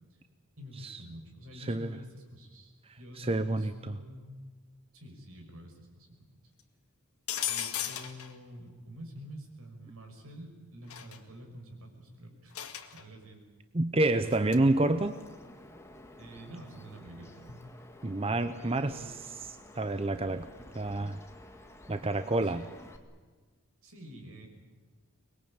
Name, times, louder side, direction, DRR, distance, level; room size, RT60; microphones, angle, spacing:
voice 1, 0.6-4.4 4.9-6.3 7.5-12.6 12.9-13.4 16.2-17.6 18.6-19.1 22.2-22.7 23.8-24.5, equal, 70° right, 3 dB, 5.9 m, -47 dB
voice 2, 1.5-2.0 2.8-4.0 13.7-15.2 18.0-19.1 19.7-20.5 20.7-21.2 21.9-22.7, right 2 dB, 25° right, 10 dB, 0.7 m, -29 dB
sound 1, 7.3-8.3 10.9-11.2 12.5-13.0 14.2-14.6, left 11 dB, 80° left, 2.0 m, -35 dB
Bird vocalization bird call bird song, 14.3-23.0, left 1 dB, 10° left, 1.8 m, -52 dB
24.0 x 21.5 x 8.9 m, 1.4 s
head